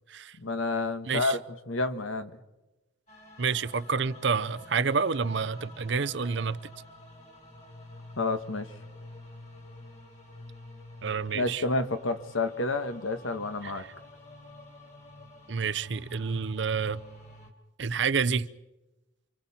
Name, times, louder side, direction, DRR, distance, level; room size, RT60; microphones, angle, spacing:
voice 1, 0.4-1.4 1.7-2.4 8.2-8.7 11.3-13.9, left 2 dB, 85° left, 9 dB, 1.5 m, -29 dB
voice 2, 1.1-1.4 3.4-6.6 11.0-11.6 13.6-13.7 15.5-17.0 17.8-18.5, right 5 dB, 60° right, 16 dB, 0.6 m, -28 dB
sound 1, 3.1-17.5, left 1 dB, 35° left, 3.0 m, -49 dB
28.5 x 25.5 x 4.3 m, 1.0 s
head